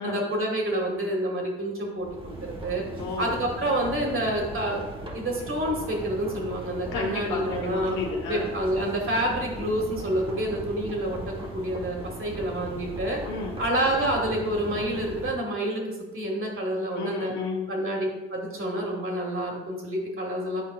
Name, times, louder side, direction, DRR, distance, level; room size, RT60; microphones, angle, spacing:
voice 1, 0.0-2.8 3.2-4.8 5.1-7.9 8.3-13.2 13.6-17.3 17.7-18.1 18.3-20.6, right 1 dB, 45° right, -1 dB, 2.0 m, -28 dB
sound 1, 2.0-15.4, right 1 dB, 15° right, 1.3 m, -38 dB
voice 2, 3.0-3.3 6.9-8.5 13.2-13.6 17.0-17.7, left 4 dB, 75° left, 1 dB, 1.3 m, -32 dB
9.0 x 4.6 x 2.5 m, 1.1 s
hypercardioid pair, 55°, 30 cm